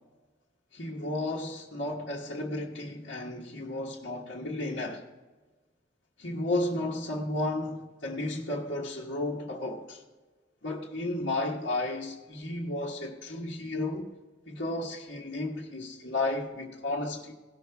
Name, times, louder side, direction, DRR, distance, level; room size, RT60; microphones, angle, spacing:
voice 1, 0.7-5.0 6.2-10.0 10.6-14.1 14.5-17.3, left 2 dB, 70° left, 1.4 m, -33 dB
18.0 x 6.4 x 3.5 m
head